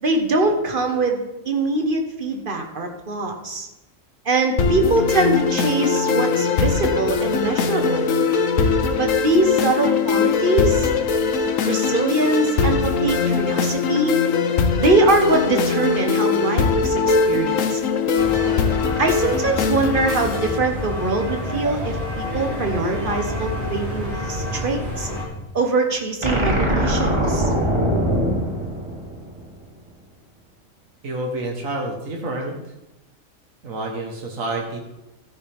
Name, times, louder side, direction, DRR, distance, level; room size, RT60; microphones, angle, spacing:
voice 1, 0.0-3.7 4.2-8.1 9.0-10.9 11.6-14.2 14.8-17.8 19.0-25.1 25.5-27.5, right 2 dB, 40° right, 3 dB, 1.6 m, -22 dB
sound 1, 4.6-20.6, left 5 dB, 80° left, 1.3 m, -21 dB
sound 2, 18.2-25.3, left 1 dB, 55° right, 3.0 m, -28 dB
sound 3, 26.2-29.6, equal, 20° right, 1.9 m, -22 dB
voice 2, 31.0-32.6 33.6-34.8, right 2 dB, 85° right, 1 dB, 1.9 m, -28 dB
13.0 x 9.7 x 3.6 m, 0.98 s
omnidirectional pair, 1.4 m